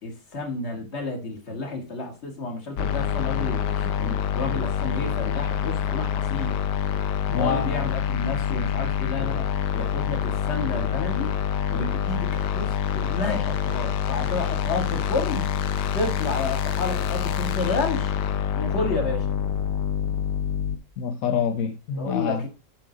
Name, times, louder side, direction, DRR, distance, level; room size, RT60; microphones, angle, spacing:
voice 1, 0.0-6.6 7.3-9.5 9.7-11.3 11.7-15.5 15.9-18.1 18.6-19.3 22.0-22.5, left 3 dB, 40° left, 2.1 m, -31 dB
sound 1, 2.8-20.8, left 8 dB, 85° left, 1.3 m, -26 dB
voice 2, 7.3-7.7 21.0-22.5, left 7 dB, 65° left, 1.0 m, -26 dB
7.5 x 5.3 x 5.0 m
omnidirectional pair, 1.8 m